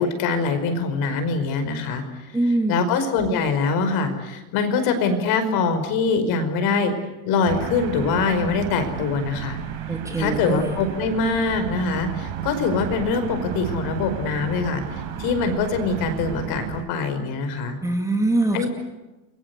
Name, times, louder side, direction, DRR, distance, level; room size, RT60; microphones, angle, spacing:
voice 1, 0.0-2.0 2.7-6.9 7.3-9.6 10.2-17.8 18.5-18.7, left 4 dB, 55° left, 8 dB, 5.2 m, -23 dB
voice 2, 2.3-2.9 9.9-10.7 17.8-18.7, right 2 dB, 5° right, 3 dB, 2.3 m, -23 dB
sound 1, 7.5-16.8, right 9 dB, 65° right, 5.5 m, -33 dB
29.5 x 22.5 x 8.2 m, 1.1 s
cardioid pair, 155°, 44 cm